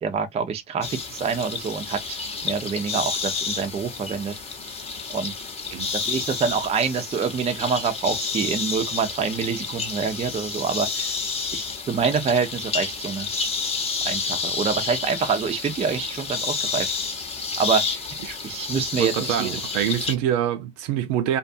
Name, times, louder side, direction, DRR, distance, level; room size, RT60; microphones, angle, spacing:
voice 1, 0.0-4.3 5.1-5.3 5.9-11.1 11.5-13.3 14.0-16.9 17.6-18.0 18.4-19.5, right 6 dB, 15° right, 0.5 m, -26 dB
sound 1, 0.8-20.1, left 5 dB, 15° left, 0.8 m, -30 dB
voice 2, 19.0-21.4, right 10 dB, 60° right, 0.6 m, -25 dB
2.5 x 2.4 x 2.5 m
supercardioid pair, 110°, 38 cm